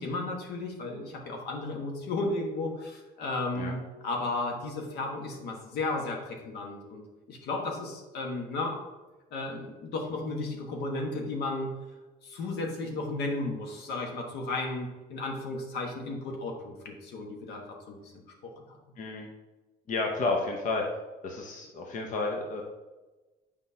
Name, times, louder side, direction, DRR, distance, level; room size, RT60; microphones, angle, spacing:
voice 1, 0.0-7.0 7.3-8.8 9.3-11.7 12.2-18.1 18.4-18.8, left 2 dB, 80° left, 1 dB, 1.4 m, -34 dB
voice 2, 19.0-19.3 19.9-20.8 21.2-22.6, left 3 dB, 50° left, 1 dB, 0.9 m, -31 dB
7.6 x 5.2 x 2.8 m, 1.2 s
cardioid pair, 110°, 17 cm